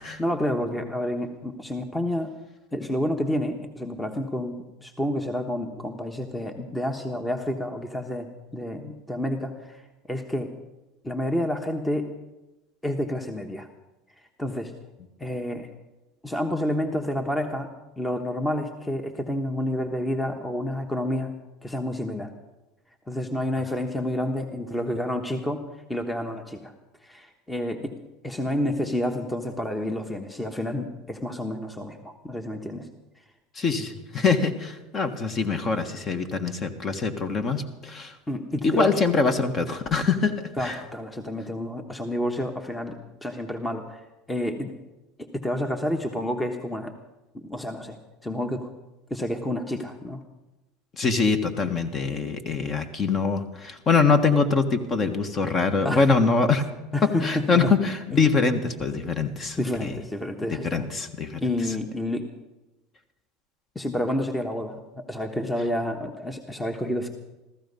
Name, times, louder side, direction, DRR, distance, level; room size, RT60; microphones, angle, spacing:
voice 1, 0.2-2.3 2.7-9.8 10.1-10.5 11.0-12.1 12.8-13.7 14.4-14.7 15.2-15.7 16.2-17.7 18.0-21.3 21.6-22.3 23.1-26.7 27.0-27.9 28.2-32.9 38.3-39.0 40.6-44.7 45.2-46.9 47.3-48.0 48.2-48.7 49.1-50.2 55.8-56.0 56.9-57.7 59.6-60.8 61.4-62.3 63.7-67.1, left 1 dB, 10° left, 6 dB, 1.2 m, -29 dB
voice 2, 33.5-38.2 38.6-40.8 51.0-56.7 57.0-60.0 60.5-61.7, left 4 dB, 35° left, 8 dB, 1.5 m, -24 dB
15.0 x 14.5 x 5.5 m, 1.0 s
supercardioid pair, 110°, 0 cm